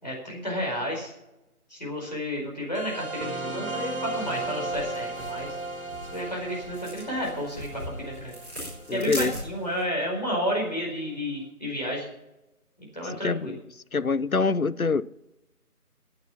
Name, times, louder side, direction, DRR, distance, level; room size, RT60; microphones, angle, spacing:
voice 1, 0.0-1.1 1.7-5.6 6.1-8.4 8.9-12.1 12.8-13.6, equal, 30° left, 4.7 m, -31 dB
sound 1, 2.7-9.8, right 2 dB, 60° right, 2.5 m, -36 dB
sound 2, 3.7-9.8, equal, 10° right, 4.8 m, -41 dB
voice 2, 8.9-9.4 13.1-13.6 13.9-15.0, left 4 dB, 65° left, 0.8 m, -25 dB
14.0 x 9.2 x 6.0 m
figure-of-eight pair, 175°, 46 cm